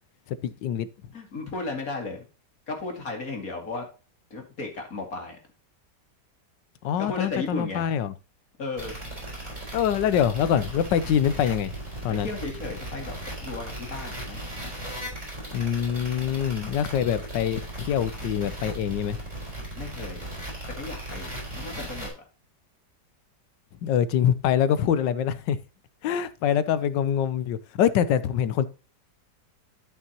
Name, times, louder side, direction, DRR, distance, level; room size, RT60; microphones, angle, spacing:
voice 1, 0.3-1.1 6.8-8.1 9.7-11.7 12.0-12.3 15.5-19.2 23.8-25.6 26.0-28.7, left 9 dB, 85° left, 1.4 m, -25 dB
voice 2, 1.1-2.2 2.7-3.9 4.3-5.4 7.0-7.9 8.6-9.0 12.1-13.1 13.4-14.4 19.8-20.3 20.8-22.1, left 3 dB, 50° left, 2.6 m, -34 dB
sound 1, 8.8-22.1, right 1 dB, 25° right, 5.2 m, -37 dB
12.5 x 5.7 x 2.9 m
omnidirectional pair, 1.9 m